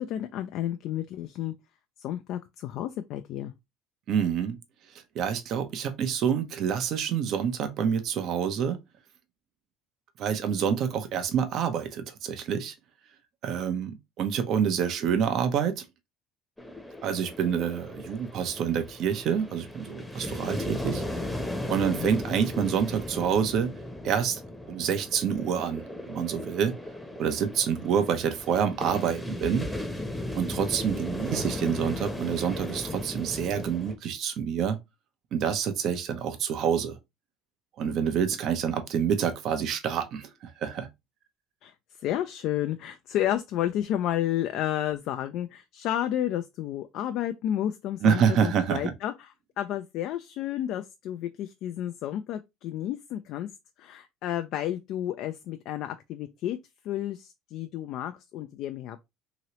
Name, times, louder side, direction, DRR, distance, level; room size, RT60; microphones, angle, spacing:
voice 1, 0.0-1.5 2.0-3.5 21.9-22.1 41.6-53.5 53.8-56.6 56.8-59.0, left 12 dB, 60° left, 0.3 m, -31 dB
voice 2, 4.1-4.6 5.1-8.8 10.2-12.7 13.4-15.8 17.0-21.0 21.7-23.7 24.0-24.4 24.7-26.7 27.2-29.7 30.3-34.8 35.3-37.0 37.8-40.9 48.0-48.9, right 7 dB, 55° right, 0.7 m, -27 dB
sound 1, 16.6-34.0, left 1 dB, 5° left, 0.8 m, -36 dB
2.9 x 2.8 x 2.9 m
supercardioid pair, 100°, 0 cm